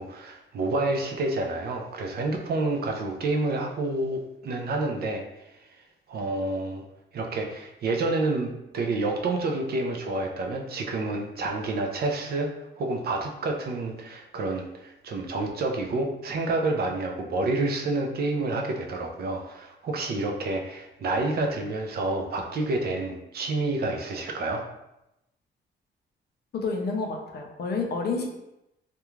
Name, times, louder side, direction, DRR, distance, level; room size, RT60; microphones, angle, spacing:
voice 1, 0.0-5.5 6.1-6.8 7.1-12.5 12.8-24.6, right 2 dB, 55° right, 1 dB, 0.4 m, -29 dB
voice 2, 26.5-28.3, left 4 dB, 55° left, 2 dB, 0.4 m, -29 dB
2.4 x 2.2 x 3.0 m, 0.89 s
wide cardioid pair, 160°, 20 cm